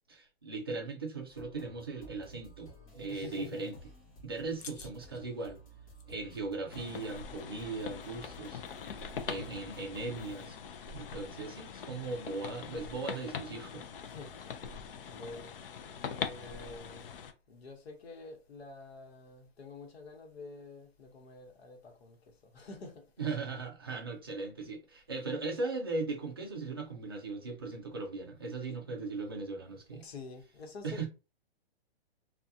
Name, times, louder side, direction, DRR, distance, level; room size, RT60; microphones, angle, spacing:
voice 1, 0.1-3.8 4.2-5.6 6.1-8.6 9.2-10.6 10.9-13.8 23.2-30.0 30.8-31.1, right 3 dB, 25° right, 0.4 m, -38 dB
sound 1, 1.3-10.5, right 1 dB, 35° left, 1.1 m, -55 dB
voice 2, 3.1-3.7 4.6-5.2 14.0-14.4 15.1-15.5 16.1-17.1 17.5-23.4 29.9-31.1, left 3 dB, 85° left, 1.1 m, -48 dB
sound 2, 6.7-17.3, left 7 dB, 65° left, 0.5 m, -42 dB
2.4 x 2.3 x 2.7 m
hypercardioid pair, 175°, 30 cm